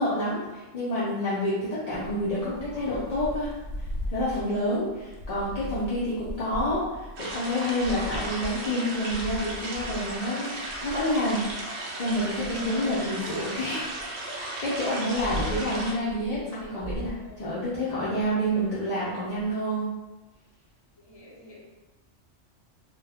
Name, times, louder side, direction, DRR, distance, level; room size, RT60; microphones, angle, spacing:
voice 1, 0.0-10.5 10.8-11.4 11.7-13.9 14.3-19.9, equal, 45° left, -10 dB, 0.5 m, -28 dB
Thunder / Rain, 1.9-11.6 12.1-14.0 14.6-19.4, equal, 90° left, 0.9 m, -39 dB
sound 1, 7.2-15.9, right 2 dB, 65° right, 0.9 m, -35 dB
voice 2, 17.1-17.7 18.3-18.7 21.0-21.6, equal, 25° left, -7 dB, 0.8 m, -51 dB
2.3 x 2.3 x 3.4 m, 1.1 s
omnidirectional pair, 1.3 m